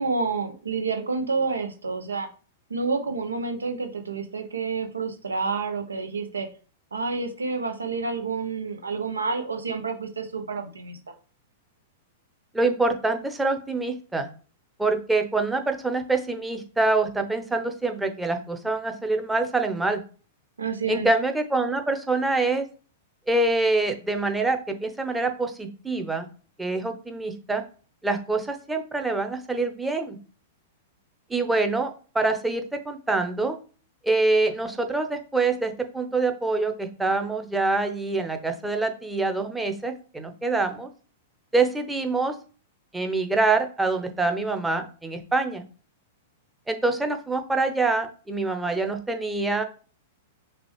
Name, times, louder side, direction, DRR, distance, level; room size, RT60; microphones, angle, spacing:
voice 1, 0.0-2.3 2.7-6.5 6.9-11.0 20.6-21.1, right 4 dB, 85° right, 6 dB, 0.8 m, -29 dB
voice 2, 12.5-14.3 14.8-20.0 20.9-22.6 23.3-26.3 26.6-27.6 28.0-30.2 31.3-33.6 34.0-40.9 41.5-42.3 42.9-45.6 46.7-49.6, right 3 dB, 10° right, 5 dB, 0.8 m, -25 dB
6.0 x 2.5 x 3.2 m, 0.38 s
hypercardioid pair, 105°, 0 cm